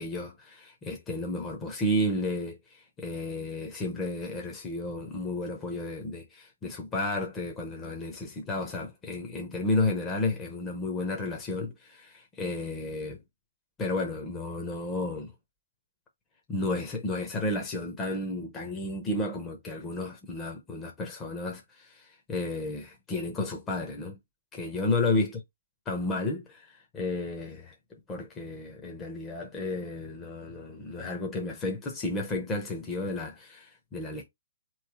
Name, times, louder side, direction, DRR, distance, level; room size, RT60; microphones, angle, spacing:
voice 1, 0.0-13.2 13.8-15.3 16.5-24.2 24.5-25.3 25.9-27.7 28.1-34.2, left 2 dB, 15° left, 0.7 m, -32 dB
3.2 x 3.1 x 4.5 m
hypercardioid pair, 160°, 0 cm